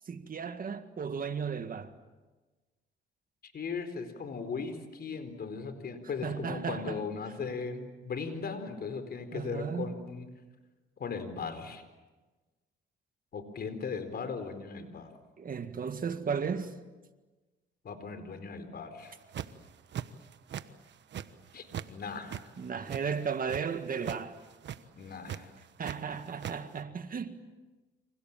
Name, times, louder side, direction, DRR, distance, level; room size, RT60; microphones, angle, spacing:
voice 1, 0.1-1.9 6.2-7.0 9.3-9.9 15.4-16.7 22.6-24.4 25.8-27.4, right 6 dB, 45° right, 1.9 m, -35 dB
voice 2, 3.4-10.3 11.0-11.8 13.3-15.1 17.8-19.1 21.5-22.4 24.9-25.5, left 5 dB, 50° left, 4.4 m, -38 dB
sound 1, 19.1-19.6 19.9-20.6 20.9-21.9 22.2-23.6 24.0-24.2 24.5-24.8 25.3-26.0 26.2-26.6, right 10 dB, 65° right, 1.3 m, -39 dB
29.5 x 26.5 x 7.5 m
cardioid pair, 90°, 20 cm